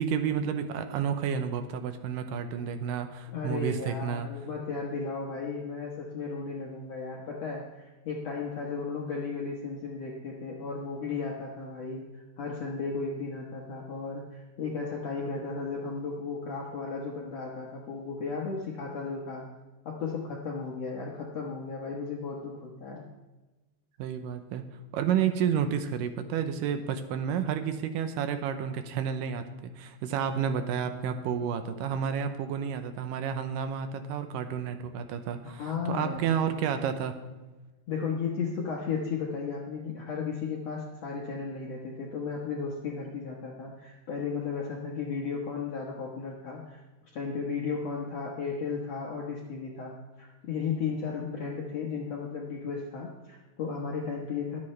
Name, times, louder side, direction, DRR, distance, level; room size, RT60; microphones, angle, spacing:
voice 1, 0.0-4.3 24.0-24.7 24.9-37.2, right 8 dB, 75° right, 8 dB, 2.2 m, -30 dB
voice 2, 3.3-19.5 19.9-23.0 35.4-36.6 37.9-54.6, left 5 dB, 60° left, -2 dB, 1.9 m, -35 dB
23.0 x 8.6 x 3.3 m, 1.2 s
omnidirectional pair, 4.3 m